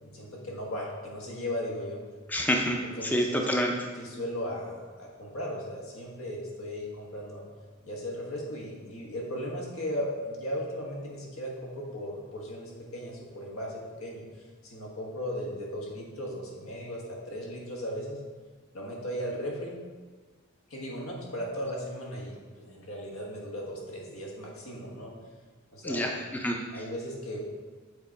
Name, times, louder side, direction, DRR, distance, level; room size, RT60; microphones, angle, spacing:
voice 1, 0.0-2.0 2.8-3.4 3.9-7.4 7.8-14.2 14.6-18.2 18.7-19.8 20.7-25.1 25.7-26.1 26.7-27.4, equal, 85° left, -2 dB, 1.4 m, -37 dB
voice 2, 2.3-3.7 25.8-26.6, equal, 10° left, 1 dB, 0.4 m, -28 dB
6.8 x 3.8 x 4.6 m, 1.4 s
head